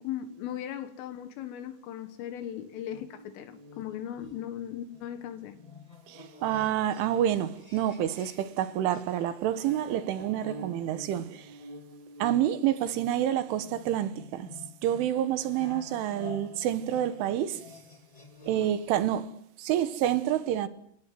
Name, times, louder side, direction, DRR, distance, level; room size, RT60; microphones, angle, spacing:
voice 1, 0.0-5.6, left 10 dB, 85° left, 4.2 m, -38 dB
sound 1, 2.9-8.6 8.9-18.9, left 1 dB, 25° left, 0.8 m, -49 dB
voice 2, 6.1-11.5 12.2-14.5 14.8-17.6 18.5-19.3 19.6-20.7, right 11 dB, 75° right, 3.8 m, -28 dB
29.0 x 25.5 x 7.7 m
omnidirectional pair, 5.7 m